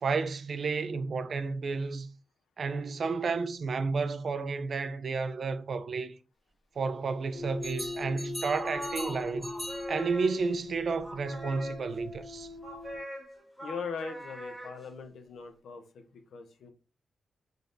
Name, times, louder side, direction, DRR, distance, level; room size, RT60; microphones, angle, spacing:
voice 1, 0.0-2.1 2.6-6.1 6.8-9.5 9.9-12.5, right 4 dB, 60° right, 0.4 m, -31 dB
sound 1, 7.3-13.0, left 3 dB, 60° left, 1.8 m, -41 dB
sound 2, 7.6-10.6 11.0-12.1 12.6-15.0, equal, 5° left, 1.3 m, -41 dB
voice 2, 13.6-16.7, left 5 dB, 85° left, 0.6 m, -40 dB
3.9 x 3.3 x 2.5 m
cardioid pair, 100°, 0 cm